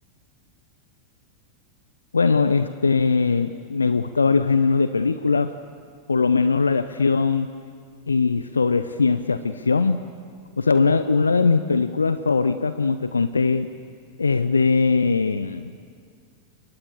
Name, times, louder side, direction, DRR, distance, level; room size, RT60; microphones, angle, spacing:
voice 1, 2.1-5.5 6.1-7.5 8.1-10.0 10.6-13.7 14.2-15.8, left 4 dB, 75° left, 13 dB, 0.7 m, -20 dB
29.0 x 23.5 x 7.2 m, 2.1 s
figure-of-eight pair, 90°, 0 cm